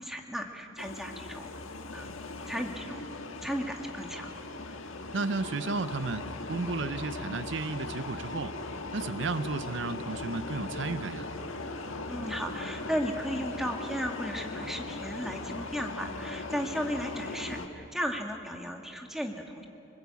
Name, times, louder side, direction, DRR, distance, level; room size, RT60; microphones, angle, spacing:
voice 1, 0.0-1.5 1.9-2.1 2.5-3.0 3.4-4.3 12.1-19.6, equal, ahead, 3 dB, 1.7 m, -35 dB
sound 1, 0.8-17.7, left 2 dB, 90° left, 1.6 m, -39 dB
voice 2, 5.1-8.5 8.9-11.3, right 3 dB, 65° right, 12 dB, 0.6 m, -33 dB
25.5 x 20.5 x 8.3 m, 2.9 s
head